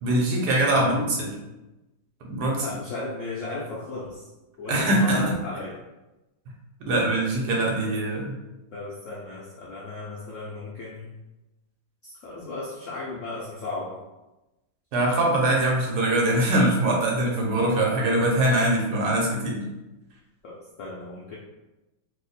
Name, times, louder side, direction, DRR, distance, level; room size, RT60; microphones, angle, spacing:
voice 1, 0.0-1.3 2.3-2.7 4.7-5.4 6.9-8.3 14.9-19.6, right 1 dB, 70° right, -1 dB, 1.2 m, -22 dB
voice 2, 2.5-4.3 4.6-5.8 8.7-11.1 12.0-14.0 20.4-21.4, left 2 dB, 75° left, -5 dB, 0.7 m, -35 dB
2.9 x 2.1 x 4.0 m, 1.0 s
omnidirectional pair, 1.9 m